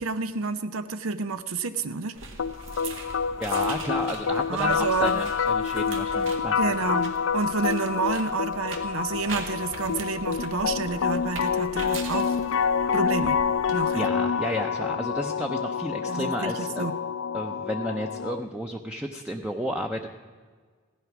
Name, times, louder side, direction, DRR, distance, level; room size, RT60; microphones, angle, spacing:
voice 1, 0.0-2.2 4.5-5.2 6.6-12.4 12.9-13.4 13.7-14.1 16.1-16.9, right 4 dB, 85° right, 12 dB, 0.7 m, -29 dB
sound 1, 2.1-13.7, right 3 dB, 70° right, 1.8 m, -41 dB
sound 2, 2.4-18.4, left 6 dB, 75° left, 0.5 m, -27 dB
voice 2, 3.4-6.6 13.9-16.9 17.3-20.1, equal, 5° right, 3 dB, 0.6 m, -32 dB
16.0 x 11.5 x 6.0 m, 1.5 s
head